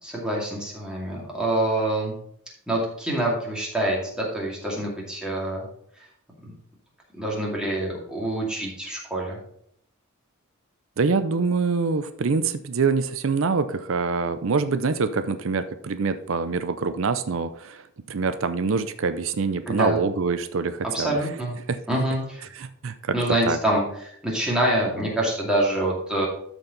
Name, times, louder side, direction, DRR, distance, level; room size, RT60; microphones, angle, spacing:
voice 1, 0.0-2.1 2.7-5.7 6.4-6.5 7.1-9.4 19.7-20.0 20.9-21.5 21.9-22.5 23.1-26.3, right 1 dB, 5° right, -4 dB, 2.4 m, -26 dB
voice 2, 11.0-17.8 18.1-21.2 21.7-21.8 22.6-22.9 23.5-23.6, right 4 dB, 70° right, 11 dB, 0.5 m, -25 dB
12.5 x 4.5 x 4.0 m, 0.70 s
head